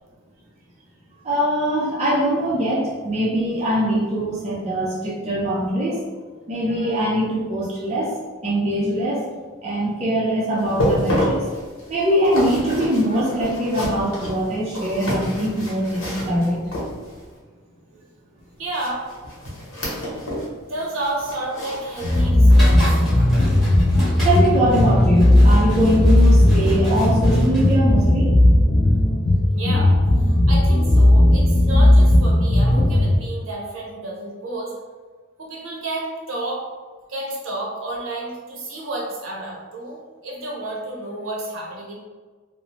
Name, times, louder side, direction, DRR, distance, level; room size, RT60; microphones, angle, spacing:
voice 1, 1.2-6.0 6.5-8.1 8.4-9.2 9.6-11.5 11.9-16.6 23.7-23.8 24.2-28.3, equal, 30° right, -6 dB, 0.4 m, -22 dB
sound 1, 10.6-17.3 18.7-20.5 20.8-22.8 23.2-23.4 23.9-24.0, equal, 85° left, 0.9 m, -29 dB
voice 2, 18.6-19.0 20.6-23.1 23.4-23.5 29.5-34.7 35.4-36.7 37.1-40.0 40.2-41.9, right 2 dB, 75° right, -3 dB, 0.7 m, -31 dB
sound 2, 22.0-33.2, left 1 dB, 30° left, 0.3 m, -16 dB
sound 3, 22.5-27.7, equal, ahead, 0.9 m, -32 dB
2.7 x 2.0 x 2.9 m, 1.4 s
head